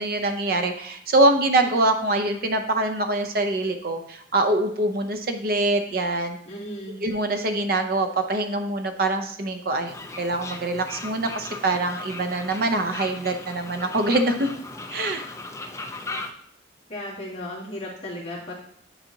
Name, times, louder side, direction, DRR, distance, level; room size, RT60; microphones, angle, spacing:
voice 1, 0.0-6.4 7.0-14.5 14.9-15.3, right 2 dB, 55° right, 7 dB, 0.6 m, -24 dB
voice 2, 6.4-7.0 16.9-18.5, left 1 dB, 35° left, -7 dB, 2.2 m, -35 dB
Fowl, 9.9-16.3, left 2 dB, 15° left, 0.4 m, -37 dB
9.9 x 4.1 x 2.8 m, 0.66 s
head